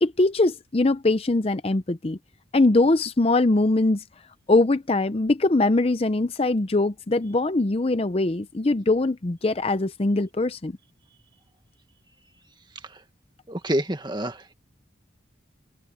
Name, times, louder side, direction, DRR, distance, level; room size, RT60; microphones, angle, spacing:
voice 1, 0.0-2.2 2.5-4.0 4.5-10.8, left 2 dB, 30° left, 0.6 m, -22 dB
voice 2, 13.5-14.4, right 1 dB, 25° right, 1.5 m, -27 dB
head